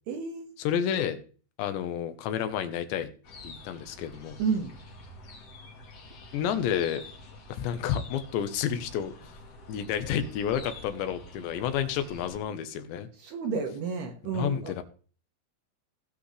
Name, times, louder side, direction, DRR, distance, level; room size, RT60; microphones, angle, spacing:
voice 1, 0.1-0.5 4.4-4.7 13.2-14.8, right 5 dB, 65° right, 3 dB, 2.8 m, -31 dB
voice 2, 0.6-1.2 1.6-3.1 3.4-4.4 6.3-7.0 7.5-9.4 9.7-13.1 14.3-14.8, left 9 dB, 75° left, 10 dB, 3.1 m, -30 dB
sound 1, 3.2-12.4, left 2 dB, 55° left, 1.8 m, -47 dB
18.5 x 7.8 x 3.3 m, 0.39 s
omnidirectional pair, 5.7 m